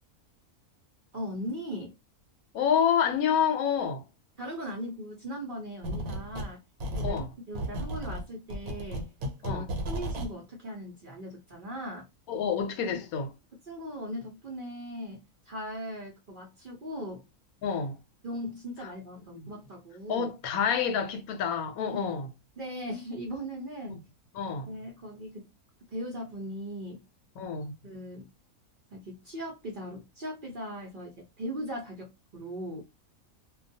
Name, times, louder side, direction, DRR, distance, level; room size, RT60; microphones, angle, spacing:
voice 1, 1.1-1.9 4.4-6.6 6.9-9.1 9.4-12.1 12.9-13.0 13.7-17.2 18.2-20.3 22.6-24.0 24.7-25.5 25.9-27.1 27.8-28.3 28.9-32.8, equal, 50° right, 0.6 m, -39 dB
voice 2, 2.5-4.0 7.0-7.3 9.4-9.7 12.3-13.3 17.6-18.0 19.3-19.4 20.1-22.3 24.3-24.7 27.4-27.7, left 7 dB, 80° left, 1.0 m, -28 dB
sound 1, 5.8-6.5 6.8-10.3, equal, 85° right, 1.1 m, -34 dB
2.3 x 2.2 x 2.6 m
omnidirectional pair, 1.5 m